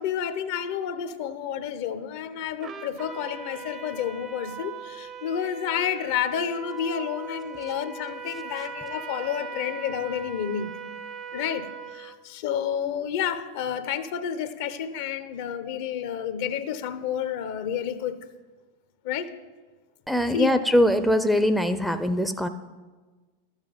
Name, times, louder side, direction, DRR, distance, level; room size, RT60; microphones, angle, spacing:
voice 1, 0.0-10.7 11.3-18.2 19.0-19.3 20.3-20.6, left 9 dB, 60° left, 12 dB, 0.8 m, -30 dB
Trumpet, 2.6-12.2, right 6 dB, 35° right, 0.7 m, -39 dB
voice 2, 20.1-22.5, left 1 dB, ahead, 9 dB, 0.6 m, -22 dB
12.0 x 7.4 x 5.2 m, 1.3 s
hypercardioid pair, 95°, 0 cm